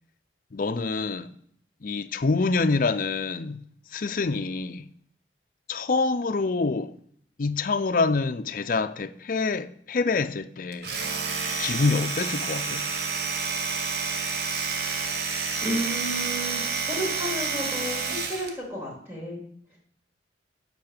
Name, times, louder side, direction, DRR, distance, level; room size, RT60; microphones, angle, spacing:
voice 1, 0.5-1.3 1.8-3.6 3.9-4.9 5.7-6.9 7.4-10.9 11.6-12.8, left 4 dB, 50° left, 0.5 m, -26 dB
Domestic sounds home sounds, 10.7-18.6, right 5 dB, 60° right, 1.0 m, -29 dB
voice 2, 15.6-16.6 16.9-19.4, equal, 15° right, 3.5 m, -32 dB
8.2 x 5.7 x 6.7 m
head